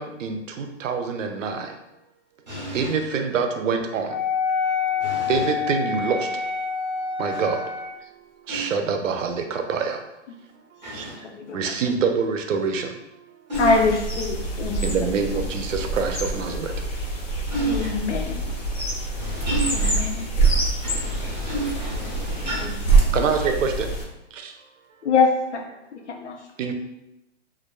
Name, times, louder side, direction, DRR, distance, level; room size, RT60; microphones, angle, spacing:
voice 1, 0.0-1.7 2.7-4.2 5.3-6.3 7.2-7.6 8.5-10.0 10.9-11.1 11.5-12.9 14.8-16.7 23.1-23.9 24.3-24.6 26.6-26.7, right 5 dB, 85° right, 5 dB, 0.5 m, -25 dB
voice 2, 2.5-2.9 5.0-5.5 7.3-7.4 8.5-8.7 10.8-11.2 13.5-13.8 17.5-17.9 19.2-19.9 20.8-22.7, right 1 dB, 35° right, -7 dB, 0.5 m, -30 dB
Wind instrument woodwind instrument, 4.1-8.0, left 6 dB, 10° left, 0.5 m, -27 dB
sound 1, 13.5-24.0, right 3 dB, 90° left, 0.9 m, -25 dB
voice 3, 13.6-14.8 17.7-18.4 20.0-20.3 25.0-25.6 26.2-26.4, left 4 dB, 65° left, 3 dB, 0.6 m, -22 dB
2.4 x 2.2 x 2.2 m, 0.91 s
hypercardioid pair, 175°, 37 cm